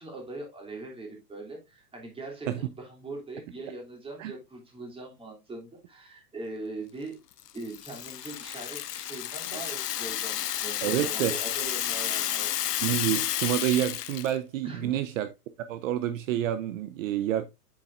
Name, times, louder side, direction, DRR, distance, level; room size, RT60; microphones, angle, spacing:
voice 1, 0.0-7.2 7.5-12.5 14.6-15.0, right 2 dB, 10° right, 2.7 m, -41 dB
Rattle (instrument), 7.4-14.3, left 12 dB, 75° left, 1.0 m, -31 dB
voice 2, 10.8-11.3 12.8-15.3 15.7-17.5, right 12 dB, 55° right, 0.7 m, -28 dB
7.6 x 7.2 x 2.4 m
hypercardioid pair, 130°, 48 cm